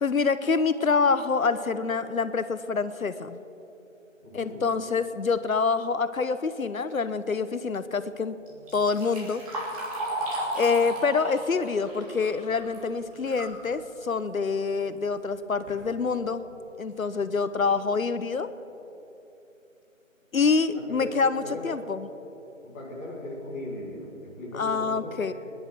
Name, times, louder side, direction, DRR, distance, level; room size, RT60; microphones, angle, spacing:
voice 1, 0.0-3.4 4.3-8.3 8.7-9.4 10.5-16.4 16.8-18.5 20.3-22.1 24.5-25.3, left 4 dB, 85° left, 12 dB, 0.9 m, -26 dB
voice 2, 4.2-4.7 20.7-21.8 22.6-25.1, left 1 dB, 10° left, -7 dB, 1.6 m, -38 dB
Liquid, 8.5-13.6 14.0-14.1 15.0-15.1 15.5-15.8 16.4-16.5 17.0-17.1 17.5-17.8, right 1 dB, 25° right, 3.2 m, -35 dB
26.5 x 10.5 x 4.7 m, 2.9 s
figure-of-eight pair, 165°, 40 cm